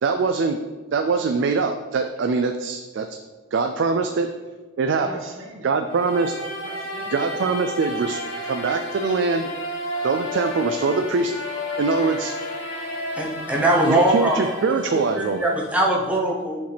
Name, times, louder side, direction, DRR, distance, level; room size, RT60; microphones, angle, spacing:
voice 1, 0.0-0.6 0.9-3.2 3.5-4.3 4.8-5.2 5.6-6.3 7.1-9.5 10.0-11.5 11.8-12.4 13.9-15.5, right 4 dB, 60° right, 7 dB, 0.4 m, -23 dB
voice 2, 4.9-5.8 6.0-7.4, right 1 dB, 85° right, -1 dB, 1.5 m, -40 dB
sound 1, 5.9-15.8, left 1 dB, 85° left, 1.6 m, -32 dB
voice 3, 13.1-16.6, right 1 dB, 5° right, -2 dB, 0.8 m, -22 dB
7.6 x 5.1 x 3.4 m, 1.3 s
head